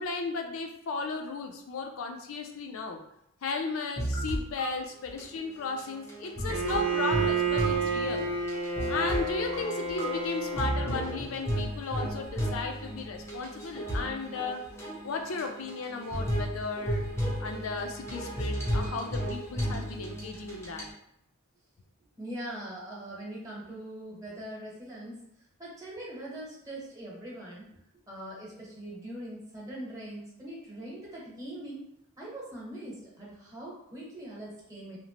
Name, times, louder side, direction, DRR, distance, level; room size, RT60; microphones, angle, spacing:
voice 1, 0.0-3.0 3.4-8.3 8.9-14.6 15.0-17.0 17.4-20.9, left 4 dB, 70° left, 4 dB, 0.4 m, -35 dB
sound 1, 4.0-4.7 5.1-5.2 5.6-20.9, equal, 10° left, 0.5 m, -34 dB
Bowed string instrument, 6.5-11.2, right 4 dB, 65° right, 0.5 m, -30 dB
voice 2, 22.2-25.2 25.6-27.7 28.1-31.8 32.2-35.0, right 1 dB, 15° right, -6 dB, 0.8 m, -41 dB
2.8 x 2.0 x 2.8 m, 0.76 s
head